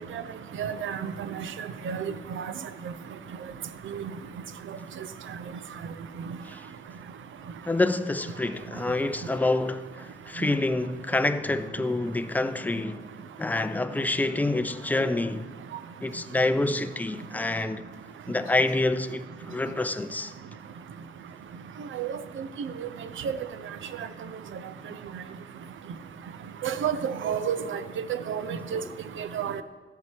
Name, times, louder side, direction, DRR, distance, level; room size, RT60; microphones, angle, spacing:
voice 1, 0.6-1.0 1.3-2.5 3.9-4.0 22.0-22.1 22.6-22.9 23.2-23.3 26.6-27.8 28.3-28.8 29.2-29.6, right 8 dB, 65° right, 0.7 m, -30 dB
voice 2, 7.7-13.1 13.4-15.5 16.0-17.8 18.3-20.3 28.7-29.0, left 2 dB, 10° left, 0.5 m, -27 dB
14.0 x 7.5 x 4.5 m
cardioid pair, 110°, 21 cm